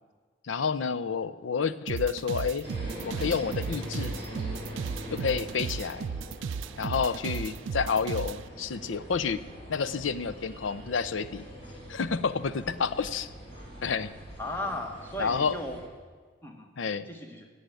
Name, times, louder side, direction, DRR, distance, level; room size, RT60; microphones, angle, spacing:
voice 1, 0.4-2.7 3.0-4.1 5.1-6.1 6.8-9.4 9.7-11.4 11.9-13.3 13.8-14.1 15.2-15.6 16.8-17.0, left 5 dB, 80° left, 15 dB, 0.5 m, -29 dB
sound 1, 1.9-8.4, right 6 dB, 80° right, 0.4 m, -34 dB
sound 2, 2.6-15.8, equal, 30° left, 4.3 m, -43 dB
voice 2, 14.4-15.8 16.4-16.7 17.1-17.5, left 1 dB, 10° left, 3 dB, 1.3 m, -36 dB
13.5 x 7.8 x 9.1 m, 1.5 s
head